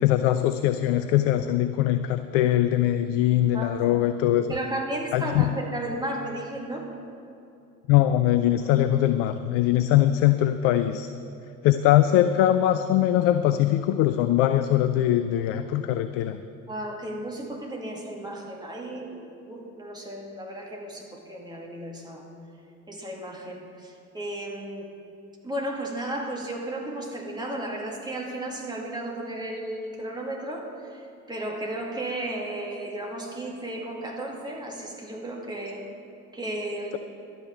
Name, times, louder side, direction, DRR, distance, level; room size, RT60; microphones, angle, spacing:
voice 1, 0.0-4.5 5.1-5.6 7.9-11.1 11.6-16.4, left 12 dB, 35° left, 11 dB, 0.4 m, -22 dB
voice 2, 3.5-4.1 4.5-6.9 8.6-8.7 16.7-22.2 22.9-24.9 25.4-31.0 31.3-35.8 36.3-37.0, right 1 dB, 10° right, -1 dB, 2.4 m, -34 dB
11.5 x 9.1 x 7.1 m, 2.7 s
figure-of-eight pair, 70°, 47 cm